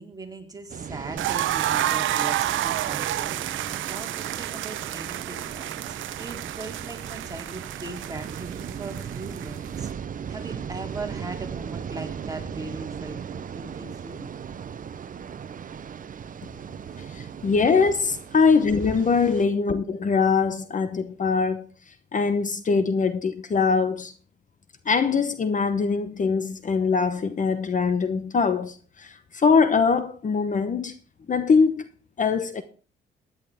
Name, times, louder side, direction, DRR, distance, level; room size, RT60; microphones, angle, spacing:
voice 1, 0.0-9.9 10.3-14.3, right 3 dB, 20° right, 3.4 m, -39 dB
sound 1, 0.7-19.4, right 7 dB, 45° right, 0.8 m, -37 dB
sound 2, 1.2-9.9, right 13 dB, 80° right, 0.8 m, -30 dB
voice 2, 17.1-24.1 24.8-30.9 31.3-31.9 32.2-32.6, left 5 dB, 40° left, 1.0 m, -22 dB
16.0 x 10.5 x 3.6 m
cardioid pair, 90°, 20 cm